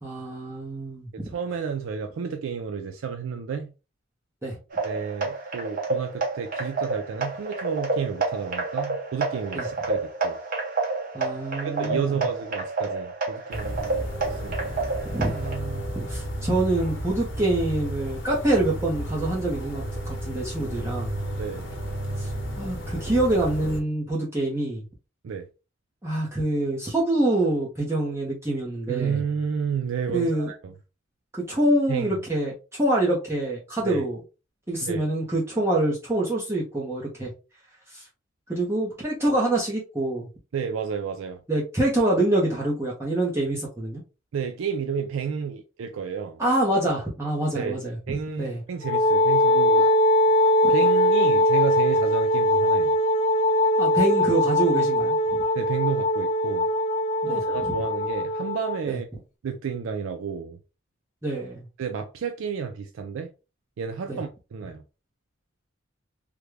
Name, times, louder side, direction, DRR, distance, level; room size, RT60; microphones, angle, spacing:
voice 1, 0.0-1.1 4.4-4.6 9.5-9.6 11.1-12.1 15.0-21.1 22.2-22.3 22.6-24.8 26.0-29.2 30.1-30.5 31.3-34.2 34.7-37.3 37.9-38.0 38.5-40.3 41.5-44.0 46.4-47.9 48.4-48.6 50.6-50.7 53.8-55.4 57.3-57.7 58.9-59.0 61.2-61.6 64.1-64.2, right 1 dB, 15° right, 0.7 m, -26 dB
voice 2, 1.1-3.7 4.8-10.4 11.6-14.7 21.4-21.7 25.2-25.5 28.9-30.7 31.9-32.2 33.8-34.1 34.8-35.0 40.5-41.4 44.3-46.4 47.5-47.8 48.1-49.9 50.7-53.0 55.5-56.7 57.3-59.1 59.4-60.6 61.8-63.3 63.8-64.8, right 6 dB, 80° right, 0.4 m, -31 dB
sound 1, 4.7-15.6, right 3 dB, 40° right, 0.8 m, -29 dB
sound 2, 13.5-23.8, equal, 60° left, 0.9 m, -32 dB
Wind instrument woodwind instrument, 48.8-58.8, left 1 dB, 35° left, 0.5 m, -21 dB
3.5 x 2.1 x 3.2 m
head